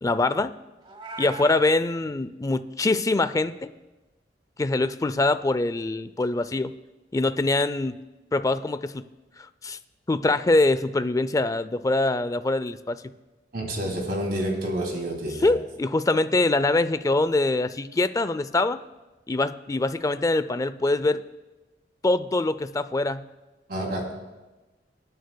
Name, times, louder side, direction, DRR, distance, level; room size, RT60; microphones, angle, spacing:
voice 1, 0.0-0.5 1.2-3.7 4.6-6.7 7.1-8.0 8.3-9.0 9.6-9.8 10.1-13.0 15.4-18.8 19.3-21.2 22.0-23.3, left 2 dB, 20° left, 13 dB, 0.4 m, -24 dB
Meow, 0.8-1.6, right 2 dB, 30° right, 1.0 m, -38 dB
voice 2, 13.5-15.5 23.7-24.1, right 1 dB, 60° right, 0 dB, 2.7 m, -29 dB
26.0 x 9.4 x 2.2 m, 1.1 s
head